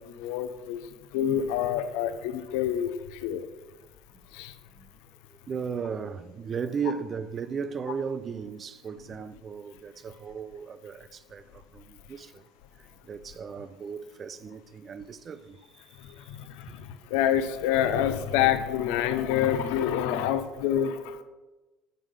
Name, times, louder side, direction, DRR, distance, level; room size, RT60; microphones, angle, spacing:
voice 1, 0.1-0.8 1.1-3.5 4.3-4.5 16.4-21.2, left 10 dB, 70° left, 0.5 m, -27 dB
voice 2, 5.5-12.4 12.8-15.8 16.2-16.3 16.7-16.8, right 6 dB, 40° right, 0.5 m, -36 dB
10.0 x 3.7 x 5.2 m
hypercardioid pair, 65°, 0 cm